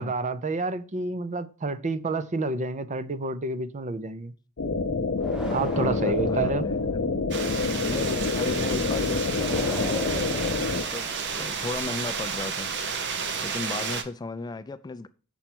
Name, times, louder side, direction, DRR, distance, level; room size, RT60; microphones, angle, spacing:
voice 1, 0.0-4.3 5.5-6.7, right 3 dB, 35° right, 0.5 m, -29 dB
sound 1, 4.6-10.8, left 3 dB, 55° left, 0.6 m, -27 dB
sound 2, 5.2-7.2 9.3-11.4, right 1 dB, 5° right, 1.1 m, -39 dB
voice 2, 5.7-7.0 7.8-10.6 10.9-12.7 13.4-15.1, left 3 dB, 20° left, 0.3 m, -35 dB
sound 3, 7.3-14.0, right 6 dB, 55° right, 0.9 m, -32 dB
7.0 x 4.4 x 5.9 m
head